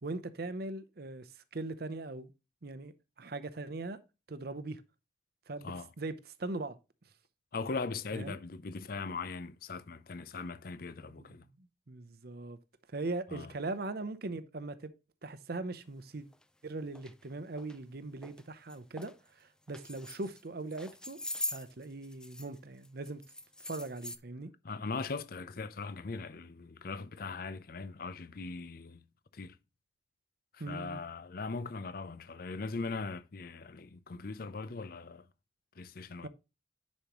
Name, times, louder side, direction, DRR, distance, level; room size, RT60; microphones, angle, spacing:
voice 1, 0.0-2.3 2.6-4.0 4.3-4.8 5.5-6.8 8.1-8.4 11.0-12.6 12.9-14.9 15.2-16.3 16.6-21.2 21.5-23.2 23.6-24.5 30.6-31.0 36.2-36.3, right 2 dB, 55° right, 0.7 m, -40 dB
voice 2, 7.5-11.4 13.3-13.5 24.6-29.0 29.3-29.6 30.5-35.3 35.8-36.3, left 4 dB, 50° left, 0.6 m, -40 dB
sound 1, 16.3-16.4 16.9-17.1 17.6-17.8 18.2-18.4 18.7-19.1 19.7-20.4 20.7-22.6 22.8-24.2, left 2 dB, 5° left, 0.4 m, -42 dB
10.5 x 5.3 x 3.0 m
head